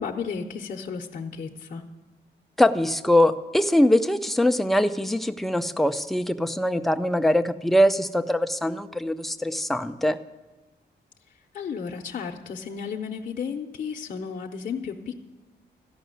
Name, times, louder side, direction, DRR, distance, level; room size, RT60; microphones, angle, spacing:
voice 1, 0.0-1.8 11.5-15.2, left 6 dB, 45° left, 1 dB, 0.7 m, -33 dB
voice 2, 2.6-10.2, left 1 dB, ahead, 9 dB, 0.4 m, -22 dB
13.5 x 5.9 x 9.1 m, 1.2 s
wide cardioid pair, 155°, 18 cm